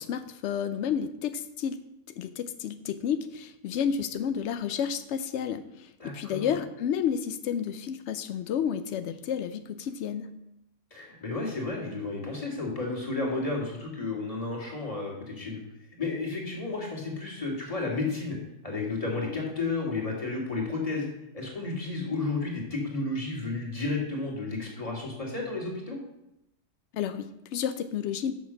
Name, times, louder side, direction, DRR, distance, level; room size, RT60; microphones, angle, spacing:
voice 1, 0.0-1.8 2.2-10.3 26.9-28.3, left 8 dB, 85° left, 10 dB, 0.6 m, -31 dB
voice 2, 6.0-6.6 10.9-15.6 16.0-18.4 18.6-21.1 21.3-26.0, left 3 dB, 20° left, -2 dB, 2.2 m, -32 dB
7.0 x 6.1 x 6.2 m, 0.84 s
omnidirectional pair, 1.7 m